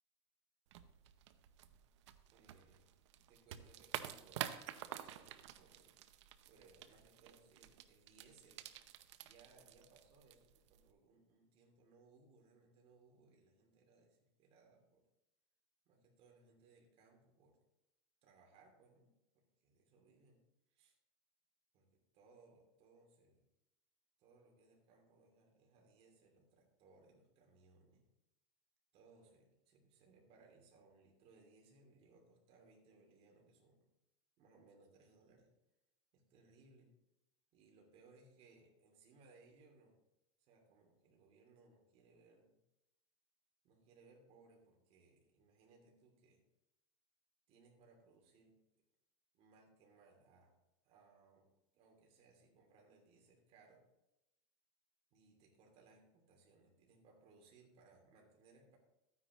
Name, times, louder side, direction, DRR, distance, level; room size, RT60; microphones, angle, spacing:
sound 1, 0.7-10.9, right 12 dB, 85° right, 0.7 m, -50 dB
voice 1, 2.3-2.9 3.3-6.0 6.5-8.7 9.2-15.0 15.8-17.6 18.2-20.4 20.7-21.0 21.7-21.9 22.1-23.4 24.2-28.1 28.9-33.9 34.4-35.5 36.1-36.9 37.5-40.0 40.4-42.6 43.6-46.4 47.5-48.6 49.3-50.6 50.8-51.5 51.7-53.8 55.1-58.8, right 3 dB, 45° right, 1 dB, 2.9 m, -67 dB
13.0 x 9.7 x 3.1 m, 0.92 s
supercardioid pair, 145°, 15 cm